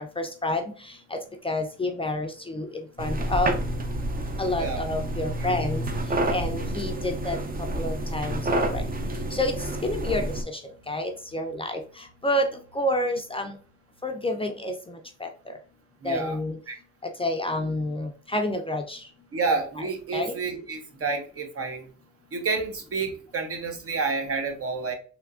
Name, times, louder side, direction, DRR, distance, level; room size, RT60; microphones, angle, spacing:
voice 1, 0.2-0.6 1.1-1.2 1.4-2.7 3.0-3.5 4.4-5.8 6.3-7.4 7.8-8.8 9.3-9.5 9.8-10.2 10.9-11.8 12.2-12.5 12.8-13.5 14.0-14.7 15.2-15.3 16.0-16.6 17.2-19.0 20.1-20.3, left 1 dB, 20° left, 4 dB, 0.4 m, -28 dB
sound 1, 3.0-10.4, right 1 dB, 30° right, 0.6 m, -29 dB
sound 2, 3.0-13.7 14.0-14.1 14.4-14.5, right 3 dB, 80° right, 1.2 m, -48 dB
voice 2, 16.0-16.4 16.7-16.8 19.3-21.9 22.3-24.9, right 4 dB, 50° right, 4 dB, 0.9 m, -29 dB
3.4 x 2.8 x 2.4 m, 0.40 s
cardioid pair, 90°, 30 cm